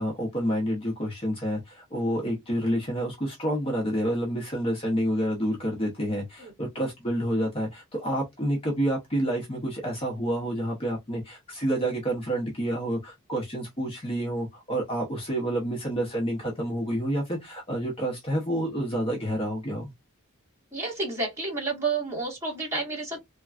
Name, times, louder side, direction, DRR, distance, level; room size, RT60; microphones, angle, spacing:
voice 1, 0.0-19.9, equal, 25° left, 0.8 m, -29 dB
voice 2, 20.7-23.2, right 3 dB, 15° right, 1.6 m, -30 dB
3.2 x 2.2 x 2.4 m
head